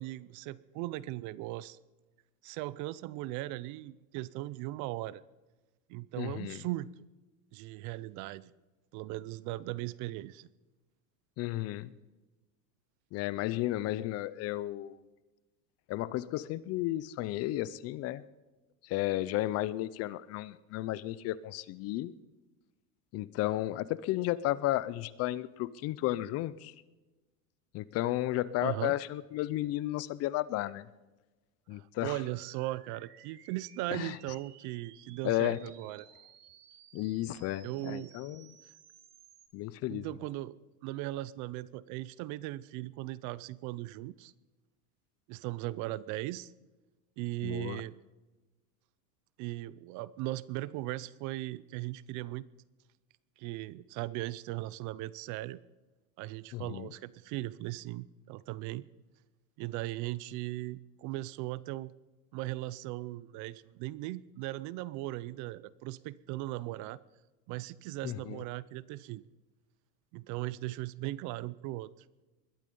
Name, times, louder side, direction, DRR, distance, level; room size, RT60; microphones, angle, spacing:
voice 1, 0.0-1.8 2.4-5.2 5.9-6.9 7.5-8.5 8.9-10.5 28.6-29.0 31.7-36.1 37.6-38.2 39.9-40.6 40.8-44.3 45.3-46.5 47.2-47.9 49.4-52.5 53.4-55.6 56.2-58.8 59.6-61.9 62.3-67.0 67.5-69.2 70.1-71.9, right 17 dB, 40° right, 21 dB, 0.6 m, -38 dB
voice 2, 6.2-6.6 11.4-11.9 13.1-15.0 15.9-18.2 18.8-22.1 23.1-26.7 27.7-30.9 31.7-32.2 33.9-34.2 35.2-35.6 36.9-38.5 39.5-40.1 47.4-47.8 56.5-56.9 68.0-68.4, left 15 dB, 35° left, 18 dB, 0.5 m, -33 dB
sound 1, 32.1-39.5, right 9 dB, 90° right, 2.7 m, -58 dB
21.0 x 12.0 x 5.4 m, 1.1 s
supercardioid pair, 135°, 46 cm